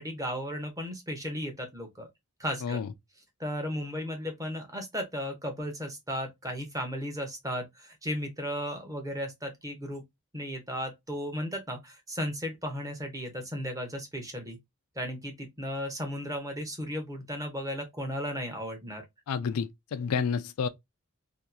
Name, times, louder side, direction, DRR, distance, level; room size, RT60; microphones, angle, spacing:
voice 1, 0.0-2.1 2.4-2.8 3.4-10.0 10.3-14.6 15.0-19.0, equal, 15° right, 0.8 m, -35 dB
voice 2, 19.3-20.7, left 6 dB, 75° left, 0.4 m, -30 dB
2.8 x 2.4 x 2.3 m
head